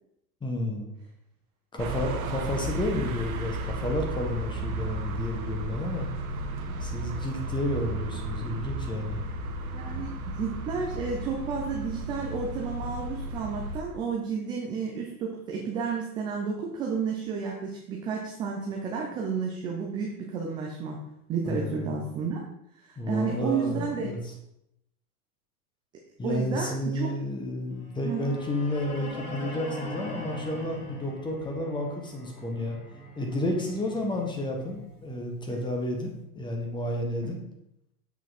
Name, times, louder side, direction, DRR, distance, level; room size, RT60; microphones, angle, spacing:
voice 1, 0.4-0.9 1.7-6.1 6.8-9.2 21.4-21.9 23.0-24.3 26.2-32.8 33.2-37.4, left 1 dB, 10° left, 2 dB, 1.3 m, -31 dB
sound 1, 1.8-13.8, right 1 dB, 70° right, 1.3 m, -34 dB
voice 2, 9.7-21.0 21.3-22.4 22.8-24.1 26.2-27.1 28.0-28.4 37.2-37.3, right 5 dB, 10° right, -1 dB, 0.3 m, -31 dB
sound 2, 27.8-35.9, left 1 dB, 75° left, 3.3 m, -42 dB
7.4 x 5.9 x 4.1 m, 0.79 s
supercardioid pair, 140°, 45 cm